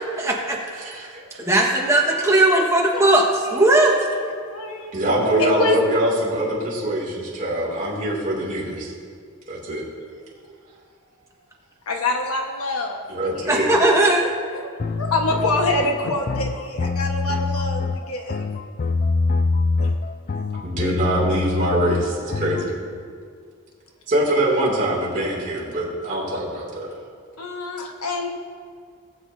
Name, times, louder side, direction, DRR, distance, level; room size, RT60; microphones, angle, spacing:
voice 1, 0.2-1.0 1.4-3.2 3.5-4.0 13.5-14.3, right 2 dB, 15° right, -2 dB, 1.5 m, -18 dB
voice 2, 0.8-1.2 4.9-8.9 9.5-9.8 13.1-13.7 20.6-22.7 24.1-26.9, right 1 dB, 35° right, -5 dB, 2.7 m, -23 dB
voice 3, 3.4-5.0 5.4-5.8 11.9-13.0 13.4-14.7 15.0-18.5 19.8-19.9 27.4-28.3, left 2 dB, 70° left, 2 dB, 1.4 m, -27 dB
sound 1, 14.8-22.7, left 3 dB, 35° left, 0.4 m, -25 dB
19.0 x 7.4 x 2.8 m, 2.2 s
head